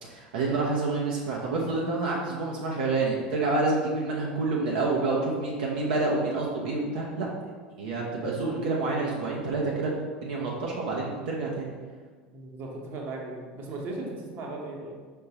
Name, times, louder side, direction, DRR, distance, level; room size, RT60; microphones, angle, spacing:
voice 1, 0.0-7.3 7.8-9.9 10.2-11.7, right 3 dB, 70° right, -3 dB, 0.7 m, -28 dB
voice 2, 12.3-15.0, right 2 dB, 50° right, 0 dB, 0.9 m, -37 dB
5.2 x 3.6 x 2.9 m, 1.5 s
hypercardioid pair, 80°, 5 cm